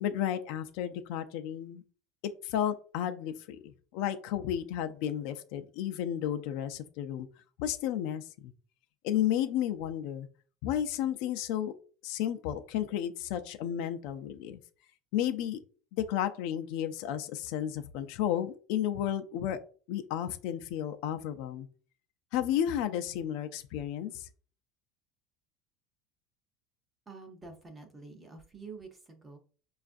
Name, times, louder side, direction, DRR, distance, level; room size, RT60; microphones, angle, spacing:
voice 1, 0.0-1.8 2.2-3.6 3.9-7.3 7.6-8.5 9.0-10.3 10.6-11.7 12.0-14.6 15.1-15.6 15.9-19.6 19.9-21.7 22.3-24.3, left 10 dB, 60° left, 8 dB, 0.4 m, -32 dB
voice 2, 27.1-29.4, right 4 dB, 10° right, 3 dB, 0.6 m, -48 dB
5.5 x 2.4 x 2.5 m, 0.40 s
cardioid pair, 170°, 0 cm